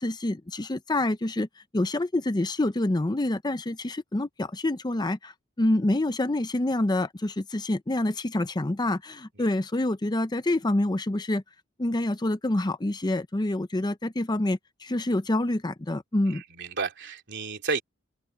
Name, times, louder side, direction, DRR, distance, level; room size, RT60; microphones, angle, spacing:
voice 1, 0.0-1.5 1.7-11.4 11.8-16.4, left 1 dB, 20° left, 0.6 m, -27 dB
voice 2, 16.3-17.8, right 4 dB, 60° right, 3.3 m, -31 dB
open air
head